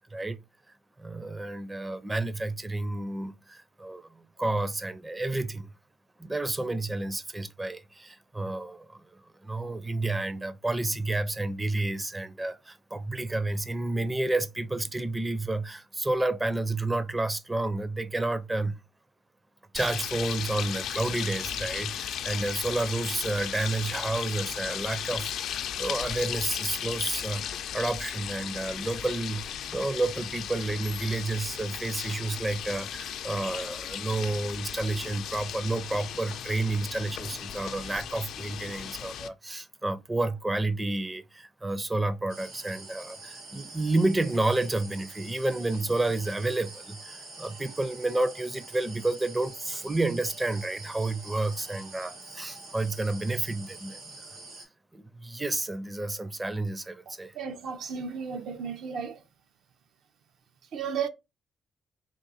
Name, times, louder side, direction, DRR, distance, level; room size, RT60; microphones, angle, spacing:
voice 1, 1.0-5.7 6.2-18.8 19.7-54.3 54.6-57.4, right 2 dB, 15° right, 0.4 m, -30 dB
sound 1, 19.8-39.3, left 9 dB, 75° left, 0.4 m, -36 dB
sound 2, 42.3-54.6, right 2 dB, 90° right, 2.3 m, -45 dB
voice 2, 57.3-59.2 60.7-61.1, right 6 dB, 70° right, 0.6 m, -33 dB
3.7 x 2.6 x 4.0 m
cardioid pair, 90°, 0 cm